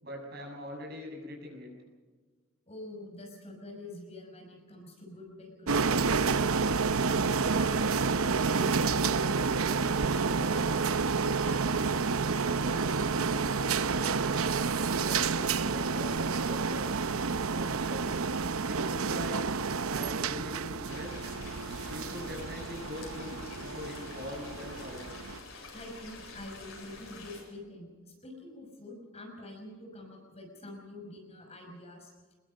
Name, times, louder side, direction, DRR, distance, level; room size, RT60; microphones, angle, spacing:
voice 1, 0.0-1.7 15.0-16.8 17.5-18.1 18.7-19.4 19.7-21.1 21.9-25.0, left 1 dB, 50° right, 1 dB, 6.8 m, -42 dB
voice 2, 2.7-6.2 6.5-6.6 7.3-10.9 11.2-13.5 25.7-32.1, left 2 dB, 30° left, 1 dB, 5.7 m, -46 dB
sound 1, 5.7-25.4, right 5 dB, 85° right, 0.8 m, -29 dB
sound 2, 20.9-27.4, left 3 dB, 80° left, 7.8 m, -47 dB
24.5 x 21.5 x 5.4 m, 1.4 s
head